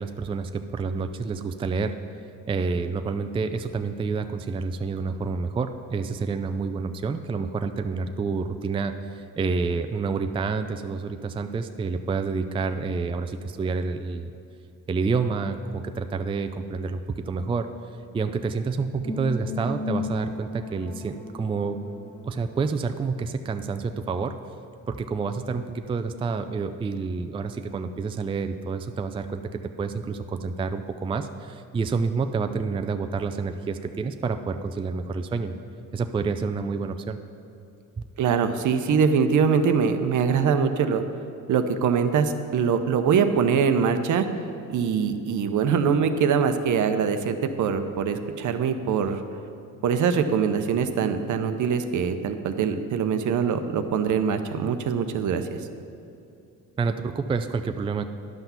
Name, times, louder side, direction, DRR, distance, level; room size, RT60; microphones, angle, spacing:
voice 1, 0.0-1.9 2.5-14.3 14.9-17.7 18.1-21.8 22.2-24.3 24.9-35.6 35.9-37.2 56.8-58.0, right 4 dB, 15° right, 8 dB, 0.4 m, -28 dB
sound 1, 19.0-23.0, left 3 dB, 15° left, 1.2 m, -35 dB
voice 2, 38.2-41.0 41.5-44.3 44.7-49.2 49.8-55.5, right 6 dB, 60° right, 8 dB, 0.8 m, -23 dB
10.5 x 5.8 x 5.7 m, 2.7 s
supercardioid pair, 80°, 34 cm